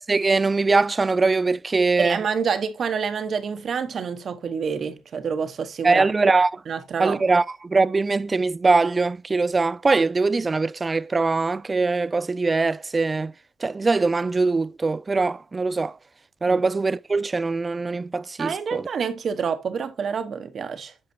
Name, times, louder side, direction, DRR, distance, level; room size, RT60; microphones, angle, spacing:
voice 1, 0.0-2.2 5.8-6.5 7.0-13.3 13.6-15.9 16.4-18.8, right 3 dB, 25° right, 0.3 m, -22 dB
voice 2, 2.0-6.1 6.7-7.3 16.5-16.6 18.4-20.9, right 6 dB, 55° right, 1.0 m, -27 dB
8.5 x 5.7 x 2.7 m
cardioid pair, 90°, 0 cm